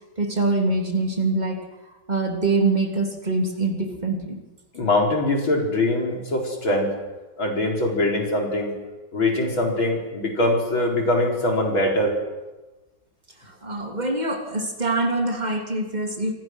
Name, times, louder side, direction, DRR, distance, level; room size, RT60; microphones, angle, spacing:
voice 1, 0.2-1.6 2.1-4.3 13.4-16.3, right 2 dB, 20° right, 3 dB, 3.1 m, -24 dB
voice 2, 4.7-6.9 7.4-8.7 9.1-12.2, left 1 dB, 85° left, 0 dB, 5.4 m, -22 dB
28.0 x 25.0 x 6.4 m, 1.1 s
omnidirectional pair, 2.1 m